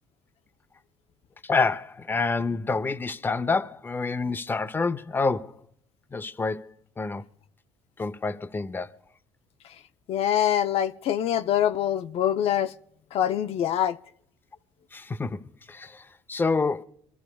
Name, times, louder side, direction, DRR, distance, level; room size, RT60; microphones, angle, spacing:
voice 1, 1.5-5.5 6.1-6.7 7.0-7.2 8.0-8.9 14.9-15.4 15.7-15.9 16.3-16.8, left 4 dB, 20° left, 0.7 m, -27 dB
voice 2, 10.1-12.7 13.1-14.0, left 10 dB, 60° left, 0.5 m, -24 dB
26.0 x 13.5 x 2.3 m
cardioid pair, 100°, 11 cm